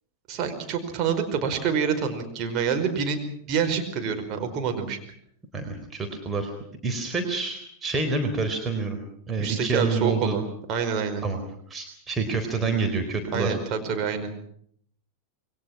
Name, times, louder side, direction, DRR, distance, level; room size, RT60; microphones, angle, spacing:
voice 1, 0.3-3.2 3.5-5.0 9.4-10.4 10.7-11.2 13.3-14.3, right 6 dB, 35° right, 4 dB, 5.1 m, -27 dB
voice 2, 5.5-6.5 6.8-9.0 9.3-10.4 11.2-11.4 11.7-13.6, right 4 dB, 20° right, 4 dB, 4.1 m, -27 dB
28.0 x 22.0 x 6.1 m, 0.64 s
figure-of-eight pair, 90°, 0 cm